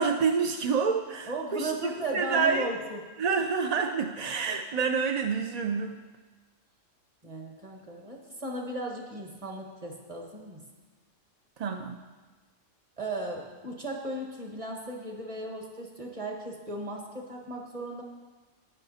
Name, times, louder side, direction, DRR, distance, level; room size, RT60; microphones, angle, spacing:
voice 1, 0.0-2.7 3.2-6.0 11.6-12.0, right 5 dB, 50° right, 4 dB, 0.4 m, -28 dB
voice 2, 1.3-3.0 7.2-10.6 13.0-18.0, right 2 dB, 30° right, 1 dB, 1.6 m, -36 dB
12.0 x 9.7 x 4.2 m, 1.3 s
omnidirectional pair, 1.3 m